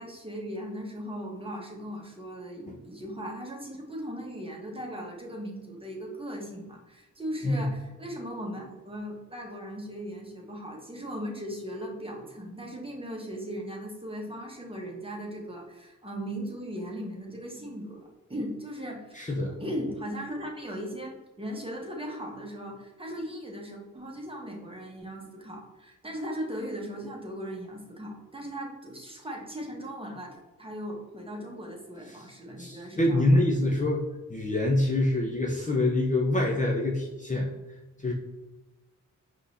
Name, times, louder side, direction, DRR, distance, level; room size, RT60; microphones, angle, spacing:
voice 1, 0.0-19.3 19.6-33.4, equal, 15° right, -1 dB, 1.3 m, -38 dB
voice 2, 19.1-19.5 32.1-32.3 32.6-34.0 34.3-37.5 38.0-38.1, left 1 dB, 20° left, -2 dB, 0.7 m, -25 dB
5.2 x 3.1 x 2.7 m, 1.1 s
cardioid pair, 60°, 34 cm